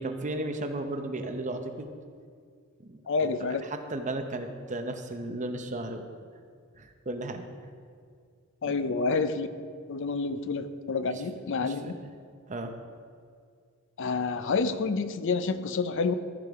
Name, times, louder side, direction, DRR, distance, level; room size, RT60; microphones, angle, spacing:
voice 1, 0.0-1.9 2.8-6.1 6.8-7.4 8.6-8.9 11.1-11.2 11.6-11.9 12.5-12.7, right 2 dB, 35° right, 5 dB, 0.8 m, -35 dB
voice 2, 3.1-3.6 8.6-9.5 9.9-11.9 14.0-16.1, left 4 dB, 60° left, 11 dB, 0.5 m, -28 dB
14.5 x 5.2 x 4.8 m, 2.1 s
head